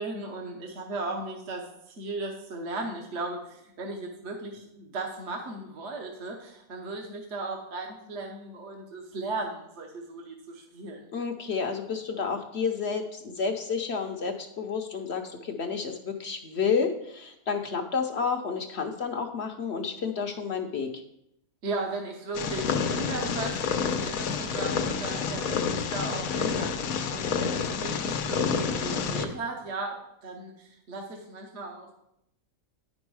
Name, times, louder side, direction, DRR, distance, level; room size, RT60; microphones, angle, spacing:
voice 1, 0.0-11.0 21.6-31.9, right 3 dB, 55° right, 1 dB, 1.2 m, -36 dB
voice 2, 11.1-20.9, left 5 dB, 55° left, 4 dB, 0.9 m, -30 dB
Purr, 22.3-29.2, left 6 dB, 85° left, 1.2 m, -29 dB
9.6 x 5.2 x 4.7 m, 0.79 s
omnidirectional pair, 1.5 m